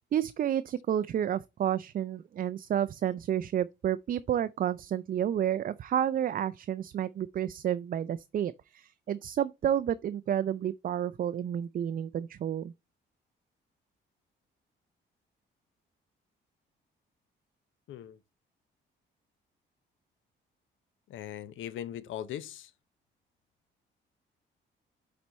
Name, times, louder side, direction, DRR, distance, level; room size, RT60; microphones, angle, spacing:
voice 1, 0.1-12.7, right 10 dB, 45° right, 0.4 m, -30 dB
voice 2, 17.9-18.2 21.1-22.7, left 11 dB, 80° left, 0.8 m, -39 dB
7.9 x 4.3 x 4.1 m
cardioid pair, 90°, 20 cm